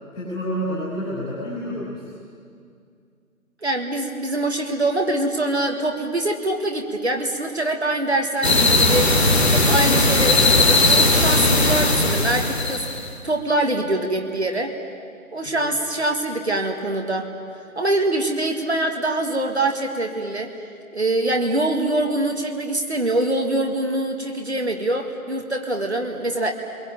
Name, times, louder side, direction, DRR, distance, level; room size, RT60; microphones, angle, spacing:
voice 1, 0.1-2.1 15.4-15.7, equal, 5° left, -10 dB, 3.0 m, -29 dB
voice 2, 3.6-9.1 9.5-12.9 13.2-14.7 15.3-20.5 20.9-26.5, right 1 dB, 45° right, 3 dB, 2.0 m, -24 dB
sound 1, 8.4-13.1, left 2 dB, 45° left, 2.8 m, -18 dB
28.5 x 22.5 x 9.0 m, 2.3 s
figure-of-eight pair, 165°, 44 cm